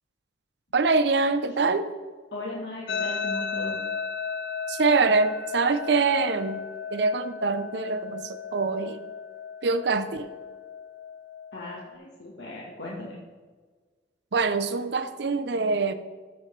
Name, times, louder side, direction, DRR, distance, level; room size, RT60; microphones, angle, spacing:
voice 1, 0.7-1.9 4.7-6.6 6.9-9.0 9.6-10.3 14.3-15.9, right 4 dB, 75° right, 11 dB, 0.6 m, -24 dB
voice 2, 2.3-3.8 11.5-13.2, left 2 dB, 85° left, -5 dB, 1.5 m, -37 dB
sound 1, 2.9-11.9, left 6 dB, 65° left, 0.4 m, -35 dB
13.5 x 6.4 x 3.3 m, 1.4 s
head